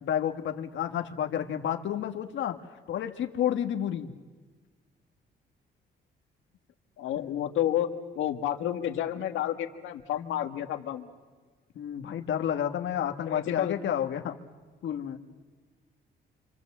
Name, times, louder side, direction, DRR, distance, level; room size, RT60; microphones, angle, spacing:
voice 1, 0.0-2.6 2.9-4.1 7.2-7.4 11.7-14.3 14.8-15.2, left 10 dB, 70° left, 5 dB, 1.5 m, -30 dB
voice 2, 7.0-11.1 13.3-13.7, left 11 dB, 90° left, 6 dB, 1.7 m, -30 dB
26.5 x 26.5 x 7.4 m, 1.4 s
cardioid pair, 90°, 20 cm